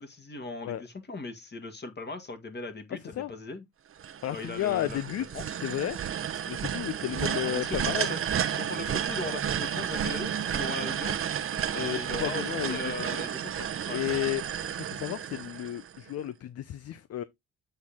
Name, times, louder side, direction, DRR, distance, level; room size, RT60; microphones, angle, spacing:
voice 1, 0.0-3.6 4.3-5.0 5.3-5.6 7.5-8.2 8.5-11.2 11.7-14.0, left 2 dB, 35° left, 2.0 m, -39 dB
sound 1, 4.0-16.1, right 9 dB, 45° right, 0.8 m, -32 dB
voice 2, 4.2-6.0 6.5-8.1 11.7-13.3 13.9-17.2, left 13 dB, 55° left, 0.6 m, -33 dB
7.9 x 4.4 x 3.5 m
cardioid pair, 90°, 30 cm